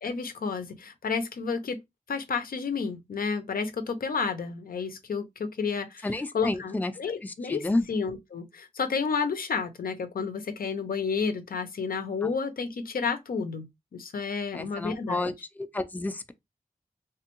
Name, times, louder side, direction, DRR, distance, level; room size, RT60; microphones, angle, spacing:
voice 1, 0.0-1.8 2.1-6.1 6.3-15.3, left 5 dB, 85° left, 0.6 m, -31 dB
voice 2, 6.0-6.9 7.2-7.9 12.2-12.3 14.5-16.3, left 2 dB, 10° left, 0.4 m, -30 dB
3.4 x 2.2 x 2.9 m
wide cardioid pair, 80°, 15 cm